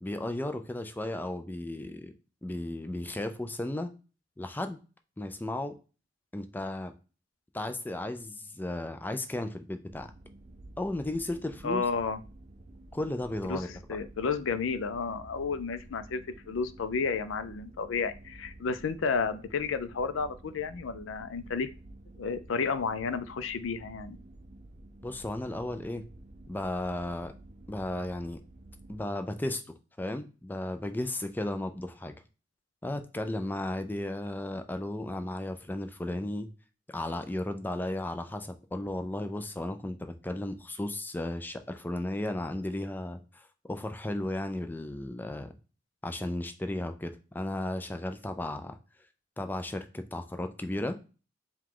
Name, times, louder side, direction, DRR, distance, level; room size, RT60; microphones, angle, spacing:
voice 1, 0.0-2.1 2.4-3.9 4.4-4.8 5.2-5.7 6.3-6.9 7.5-10.1 10.8-11.9 12.9-13.7 25.0-26.0 26.5-27.3 27.7-28.4 28.9-29.6 30.0-32.1 32.8-36.5 36.9-45.5 46.0-48.8 49.4-51.0, left 1 dB, 10° left, 7 dB, 0.4 m, -34 dB
sound 1, 9.9-29.0, right 1 dB, 35° right, 0.6 m, -51 dB
voice 2, 11.6-12.2 13.5-13.6 13.9-16.2 16.5-21.7 22.2-24.2, left 5 dB, 85° left, 12 dB, 0.5 m, -31 dB
4.8 x 2.3 x 3.7 m, 0.33 s
head